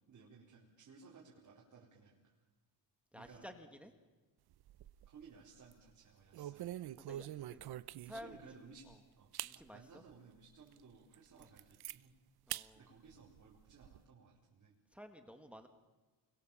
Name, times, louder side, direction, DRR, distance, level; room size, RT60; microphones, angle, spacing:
voice 1, 0.0-2.4 3.1-3.5 5.1-6.8 8.0-8.9 9.2-12.1 12.7-14.8, right 5 dB, 45° right, -4 dB, 4.2 m, -59 dB
voice 2, 3.1-3.9 7.1-7.6 8.0-8.4 8.9-9.0 9.4-10.0 11.4-11.5 12.5-12.8 14.9-15.7, equal, 5° right, 6 dB, 1.5 m, -53 dB
sound 1, 4.5-5.2 5.6-5.8 6.3-8.4 8.9-9.0 9.3-9.6 10.1-10.2 10.7-10.8 11.1-12.0 12.5-12.7 13.1-14.0, right 13 dB, 65° right, 0.7 m, -45 dB
30.0 x 22.0 x 7.2 m, 1.2 s
cardioid pair, 170°, 42 cm